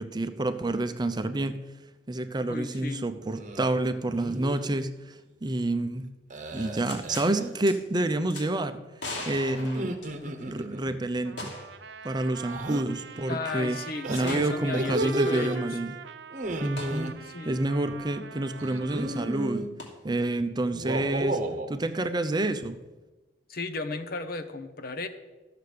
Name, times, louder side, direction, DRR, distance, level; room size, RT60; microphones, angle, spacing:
voice 1, 0.0-1.6 2.1-6.1 6.5-8.8 9.3-10.0 10.5-11.6 12.0-13.8 14.1-16.0 16.6-17.2 17.5-19.7 20.0-21.4 21.7-22.8, right 2 dB, 25° right, 9 dB, 0.6 m, -28 dB
voice 2, 2.5-3.1 13.3-15.8 17.3-17.6 23.5-25.1, left 3 dB, 55° left, 8 dB, 0.9 m, -35 dB
sound 1, 3.3-3.7 4.1-4.6 6.3-7.6 9.6-11.0 12.4-12.8 14.0-15.6 16.3-17.1 18.6-19.7 20.7-21.7, right 1 dB, 45° right, 1.0 m, -33 dB
sound 2, 6.8-7.3 7.7-7.8 8.3-8.5 9.0-10.5 11.4-11.8 12.1-12.2 14.3-14.5 16.8-17.0 19.8-19.9, left 2 dB, 85° left, 2.6 m, -39 dB
Trumpet, 11.2-19.6, right 6 dB, 80° right, 0.6 m, -44 dB
13.0 x 6.7 x 6.7 m, 1.1 s
head